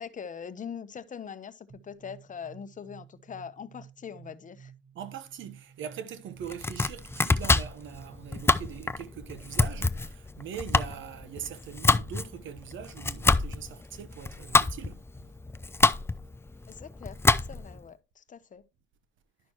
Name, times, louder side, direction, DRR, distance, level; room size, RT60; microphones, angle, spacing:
voice 1, 0.0-4.7 16.7-17.2 17.5-18.6, left 7 dB, 40° left, 0.8 m, -42 dB
sound 1, 1.7-9.3, right 7 dB, 45° right, 2.7 m, -53 dB
voice 2, 4.9-15.0, right 8 dB, 75° right, 1.0 m, -42 dB
Domestic sounds home sounds, 6.4-17.8, left 3 dB, 10° left, 0.4 m, -27 dB
11.0 x 6.1 x 3.0 m
cardioid pair, 90°, 20 cm